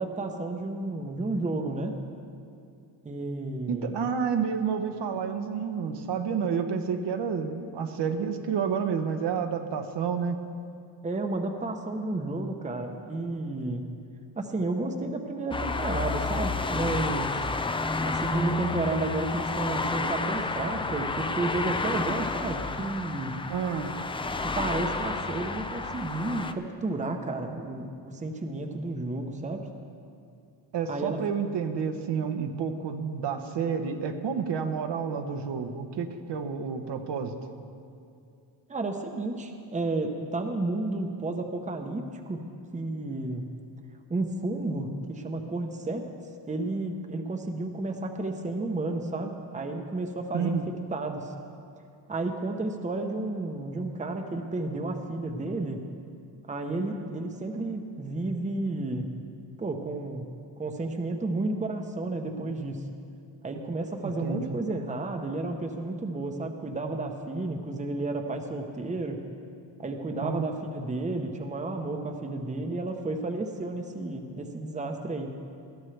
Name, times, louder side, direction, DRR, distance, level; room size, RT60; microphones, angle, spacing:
voice 1, 0.0-2.0 3.0-3.9 11.0-13.8 14.4-17.4 18.0-23.4 24.4-29.7 30.9-31.2 38.7-42.4 42.7-43.5 44.1-46.0 46.5-50.6 50.9-51.3 52.1-55.9 56.5-59.1 59.6-60.3 60.6-62.8 63.4-69.2 69.8-75.4, right 2 dB, 15° right, 4 dB, 0.9 m, -32 dB
voice 2, 3.7-10.4 23.5-23.9 30.7-37.3 50.3-50.7 64.2-64.6 70.2-70.4, right 6 dB, 70° right, 5 dB, 1.1 m, -30 dB
sound 1, 15.5-26.5, left 3 dB, 15° left, 0.4 m, -30 dB
20.5 x 13.0 x 3.3 m, 2.4 s
cardioid pair, 125°, 44 cm